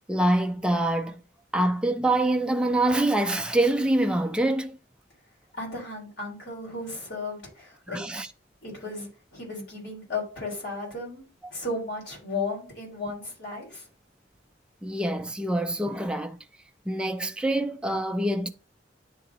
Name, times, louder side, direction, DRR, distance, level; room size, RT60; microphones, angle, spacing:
voice 1, 0.1-1.2 1.5-4.8 7.9-8.3 14.8-16.4 16.9-18.5, right 1 dB, 5° right, 0.4 m, -25 dB
voice 2, 5.5-8.0 8.6-11.2 11.5-13.9, left 3 dB, 65° left, 3.9 m, -35 dB
10.0 x 3.8 x 2.9 m
head